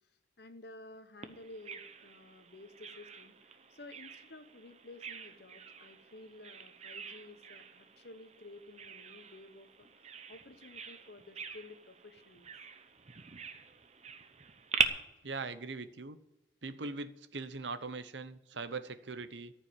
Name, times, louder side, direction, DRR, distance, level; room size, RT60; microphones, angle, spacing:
voice 1, 0.4-12.5, left 2 dB, 60° left, 10 dB, 1.0 m, -53 dB
Bird vocalization bird call bird song, 1.2-14.9, right 6 dB, 35° right, 0.8 m, -42 dB
voice 2, 15.2-16.2 16.6-19.5, right 3 dB, 85° right, 12 dB, 0.9 m, -41 dB
14.0 x 5.8 x 9.0 m, 0.94 s
head